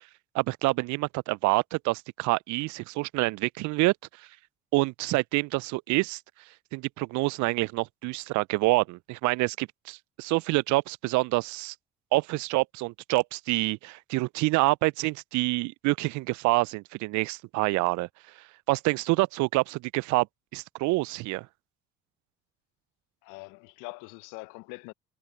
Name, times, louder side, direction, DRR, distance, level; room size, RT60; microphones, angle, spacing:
voice 1, 0.3-3.9 4.7-6.2 6.7-11.7 12.1-18.1 18.7-20.3 20.5-21.5, right 23 dB, 60° right, 0.7 m, -27 dB
voice 2, 23.2-24.9, left 28 dB, 65° left, 1.1 m, -43 dB
figure-of-eight pair, 50°, 33 cm